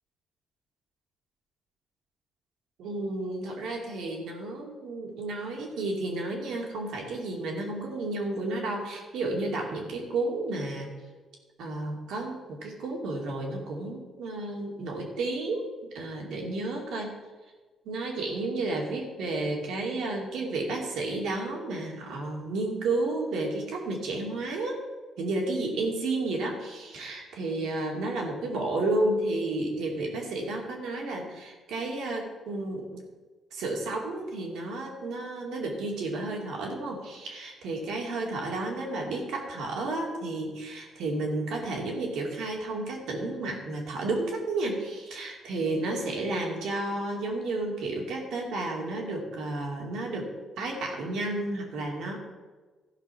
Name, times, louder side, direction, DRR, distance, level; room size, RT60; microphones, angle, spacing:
voice 1, 2.8-10.9 11.6-15.7 15.9-17.1 17.8-24.8 25.2-33.0 33.5-50.3 50.6-52.2, right 2 dB, 80° right, 0 dB, 2.6 m, -32 dB
14.0 x 5.4 x 5.7 m, 1.3 s
cardioid pair, 90°, 0 cm